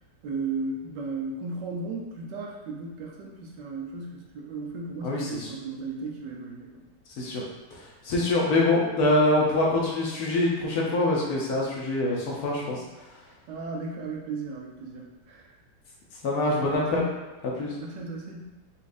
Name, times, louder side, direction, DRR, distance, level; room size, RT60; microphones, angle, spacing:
voice 1, 0.2-6.9 12.7-12.8 13.5-15.5 16.4-17.2 17.8-18.5, right 3 dB, 80° right, -1 dB, 1.3 m, -35 dB
voice 2, 5.0-5.5 7.2-7.4 8.0-12.8 16.2-17.0 17.6-17.7, left 2 dB, 65° left, -3 dB, 1.0 m, -24 dB
4.2 x 2.4 x 2.5 m, 1.1 s
omnidirectional pair, 1.9 m